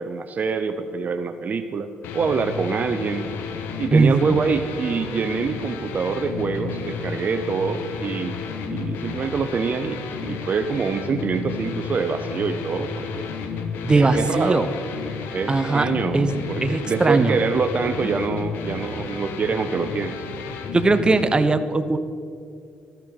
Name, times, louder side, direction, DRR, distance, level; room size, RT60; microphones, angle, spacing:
voice 1, 0.0-3.3 3.8-8.4 8.7-13.3 13.9-14.6 15.3-20.3, right 5 dB, 50° right, 9 dB, 0.7 m, -25 dB
sound 1, 2.0-21.2, left 5 dB, 85° left, 1.2 m, -32 dB
voice 2, 3.9-4.4 13.8-14.7 15.5-17.4 18.0-18.1 20.7-22.0, right 3 dB, 25° right, 10 dB, 1.0 m, -20 dB
14.0 x 12.5 x 5.1 m, 2.4 s
supercardioid pair, 65°, 4 cm